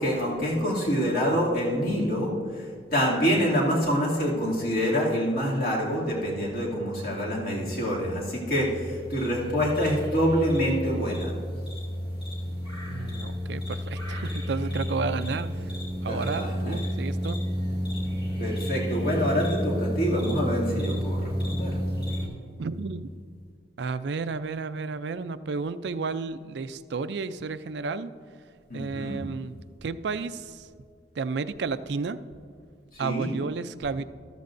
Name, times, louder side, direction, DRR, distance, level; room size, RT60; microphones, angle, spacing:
voice 1, 0.0-2.7 2.9-11.3 16.1-16.8 18.4-21.8 28.7-29.2 32.9-33.3, equal, 50° left, -4 dB, 2.6 m, -26 dB
sound 1, 8.6-22.3, equal, 30° left, 2.5 m, -31 dB
voice 2, 12.9-15.7 16.0-17.5 22.6-23.1 23.8-28.1 28.7-30.7 31.2-32.2 33.0-34.1, right 4 dB, 70° right, 13 dB, 0.4 m, -32 dB
13.5 x 13.5 x 2.6 m, 2.1 s
head